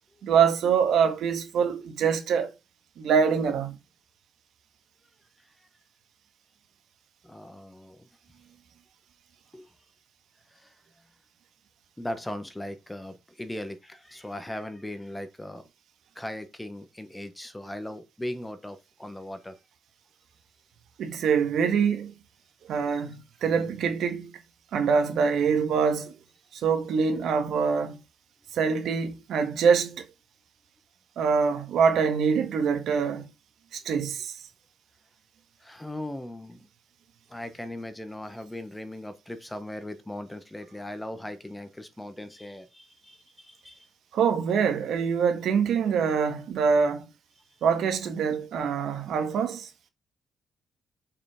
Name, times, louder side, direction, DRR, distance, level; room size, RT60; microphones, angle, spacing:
voice 1, 0.2-2.5 3.0-3.8 21.0-22.1 22.7-24.3 24.7-26.1 26.5-28.0 28.5-30.0 31.2-33.3 33.7-34.4 44.1-47.0 47.6-49.7, right 6 dB, 70° right, 1.8 m, -24 dB
voice 2, 7.2-8.1 9.5-9.7 10.5-10.7 12.0-15.6 16.1-19.6 22.9-23.0 35.6-36.7 37.3-43.9, left 1 dB, 10° left, 1.3 m, -38 dB
7.0 x 5.7 x 5.1 m
cardioid pair, 115°, 0 cm